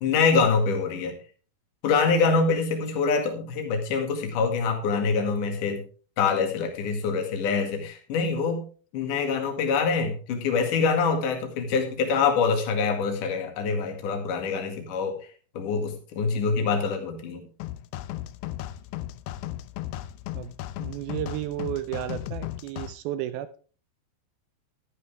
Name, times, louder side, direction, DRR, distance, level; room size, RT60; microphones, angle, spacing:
voice 1, 0.0-1.1 1.8-5.8 6.2-8.6 8.9-15.2 15.6-17.5, left 5 dB, 55° left, 4 dB, 3.3 m, -25 dB
sound 1, 17.6-22.9, left 13 dB, 85° left, 2.8 m, -36 dB
voice 2, 20.8-23.6, right 13 dB, 80° right, 12 dB, 2.3 m, -33 dB
12.0 x 11.5 x 3.5 m, 0.38 s
omnidirectional pair, 4.8 m